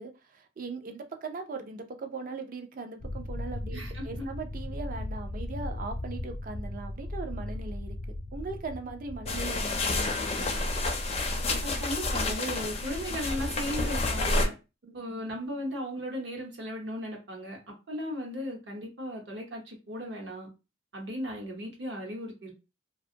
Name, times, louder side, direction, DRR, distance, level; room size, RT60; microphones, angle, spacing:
voice 1, 0.0-8.0 8.3-10.6 14.8-15.3, right 4 dB, 45° right, 7 dB, 0.4 m, -40 dB
sound 1, 3.0-9.5, left 1 dB, 85° left, 0.6 m, -37 dB
voice 2, 3.7-4.3 11.6-14.5 14.9-17.6 17.9-20.5 20.9-22.5, equal, 65° right, 1 dB, 0.9 m, -36 dB
sound 2, 9.2-14.5, left 2 dB, 30° left, 0.4 m, -29 dB
2.5 x 2.2 x 2.7 m, 0.29 s
head